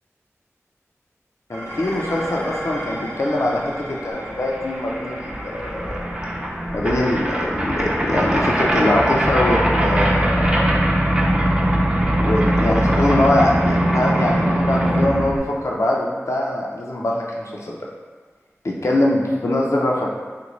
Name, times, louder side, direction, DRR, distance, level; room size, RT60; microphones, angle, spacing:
voice 1, 1.5-5.9 6.7-10.8 12.2-17.8 18.6-20.1, left 1 dB, 70° left, -2 dB, 0.4 m, -22 dB
Dishes pots and pans, 1.5-10.3, equal, 75° right, 0.9 m, -36 dB
sound 1, 4.2-4.3 4.5-15.4, right 1 dB, 20° right, 0.5 m, -20 dB
3.4 x 2.5 x 3.0 m, 1.4 s
wide cardioid pair, 40°, 5 cm